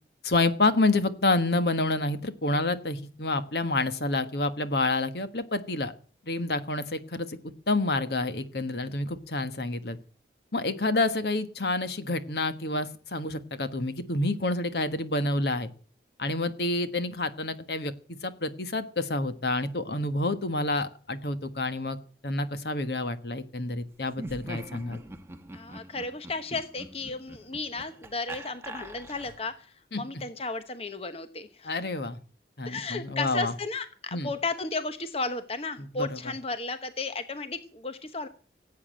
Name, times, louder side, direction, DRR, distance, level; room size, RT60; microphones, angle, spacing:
voice 1, 0.2-5.9 6.3-7.4 7.7-10.0 10.5-15.7 16.2-17.9 18.2-22.0 22.2-25.0 29.9-30.0 31.6-32.2 32.6-33.5 34.1-34.3 35.8-36.3, left 2 dB, 65° left, 11 dB, 1.4 m, -28 dB
Laughter, 24.1-29.5, right 1 dB, 15° right, 1.1 m, -43 dB
voice 2, 25.5-29.7 29.9-31.8 32.6-38.3, left 3 dB, 35° left, 10 dB, 1.0 m, -34 dB
16.5 x 8.5 x 8.9 m, 0.42 s
head